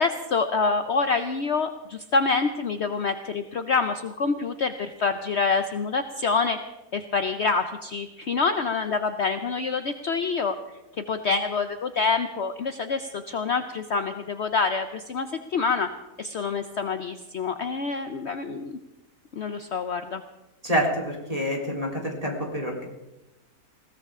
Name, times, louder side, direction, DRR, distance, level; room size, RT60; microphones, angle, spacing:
voice 1, 0.0-6.6 6.9-10.6 11.1-15.9 16.2-18.8 19.3-20.2, left 4 dB, 55° left, 8 dB, 0.9 m, -26 dB
voice 2, 20.6-22.8, equal, 25° right, -1 dB, 3.7 m, -27 dB
20.5 x 17.0 x 3.7 m, 1.0 s
omnidirectional pair, 1.6 m